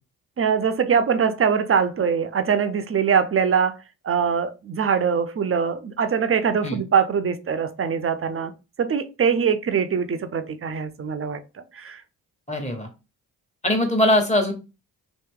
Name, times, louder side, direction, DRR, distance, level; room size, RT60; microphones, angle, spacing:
voice 1, 0.4-3.8 4.0-8.5 8.8-11.4 11.7-12.0, right 6 dB, 30° right, 0.6 m, -22 dB
voice 2, 12.5-12.9 13.6-14.5, left 1 dB, 15° left, 1.4 m, -21 dB
2.9 x 2.6 x 3.6 m
hypercardioid pair, 45°, 42 cm